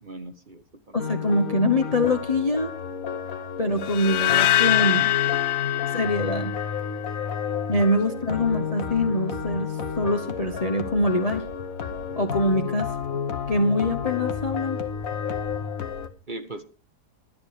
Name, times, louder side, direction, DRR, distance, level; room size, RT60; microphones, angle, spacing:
voice 1, 0.0-1.0 8.3-8.4 16.3-16.6, right 2 dB, 35° right, 7 dB, 1.2 m, -39 dB
voice 2, 0.9-2.7 3.6-5.1 5.9-6.5 7.7-11.4 12.2-12.9 13.5-14.8, left 1 dB, 30° left, 7 dB, 0.8 m, -24 dB
sound 1, 1.0-16.1, left 7 dB, 55° left, 1.6 m, -31 dB
sound 2, 3.9-7.1, left 14 dB, 75° left, 1.5 m, -24 dB
12.5 x 11.5 x 4.9 m, 0.33 s
omnidirectional pair, 1.8 m